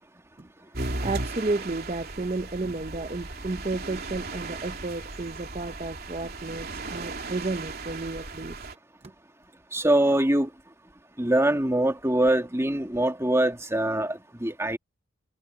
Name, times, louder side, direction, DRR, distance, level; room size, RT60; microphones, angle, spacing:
sound 1, 0.7-8.7, right 2 dB, 45° right, 3.2 m, -36 dB
voice 1, 1.0-8.6, right 2 dB, 30° right, 0.7 m, -32 dB
voice 2, 9.7-10.5 11.2-14.8, right 1 dB, 15° right, 1.9 m, -23 dB
head